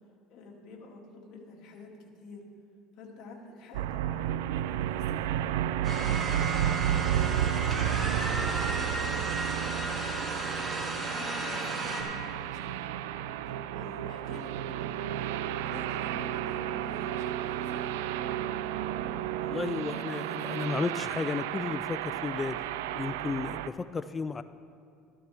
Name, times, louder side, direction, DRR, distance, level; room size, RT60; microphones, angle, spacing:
voice 1, 0.3-2.4 3.0-6.5 7.2-7.7 8.3-12.9 13.5-14.6 15.6-18.5, left 3 dB, 60° left, 0 dB, 2.1 m, -49 dB
sound 1, 3.7-23.7, right 11 dB, 90° right, 0.4 m, -32 dB
sound 2, 5.8-12.0, right 2 dB, 25° right, 2.3 m, -34 dB
voice 2, 19.4-22.6 22.9-24.4, left 4 dB, 25° left, 12 dB, 0.3 m, -33 dB
13.5 x 12.5 x 3.5 m, 2.5 s
supercardioid pair, 110°, 0 cm